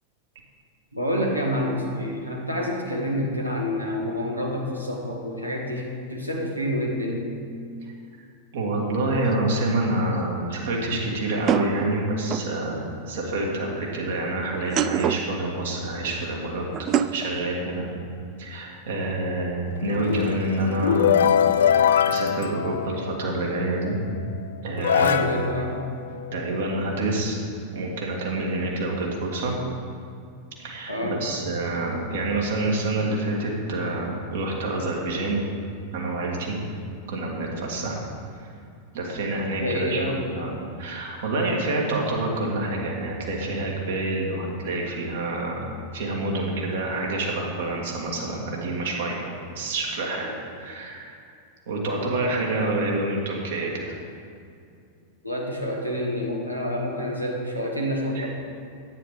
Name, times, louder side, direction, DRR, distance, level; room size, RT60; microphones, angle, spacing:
voice 1, 0.9-7.4 24.9-25.8 30.9-31.2 39.6-40.2 55.2-58.3, equal, 90° right, -2 dB, 1.7 m, -28 dB
voice 2, 8.5-17.9 18.4-21.3 21.8-24.0 24.6-25.2 26.3-27.4 27.7-29.5 30.6-35.4 35.9-36.6 37.1-38.0 38.4-38.5 38.9-40.0 40.3-45.7 45.9-49.3 49.6-51.1 51.7-53.8 58.1-58.3, right 2 dB, 60° right, -2 dB, 2.1 m, -27 dB
sound 1, 9.3-9.4 11.5-12.5 14.5-15.3 16.7-17.3, right 9 dB, 30° right, 0.4 m, -25 dB
sound 2, 19.7-23.4 24.2-24.3 24.8-26.7, left 8 dB, 65° left, 0.4 m, -23 dB
9.8 x 9.3 x 5.0 m, 2.4 s
figure-of-eight pair, 90°, 0 cm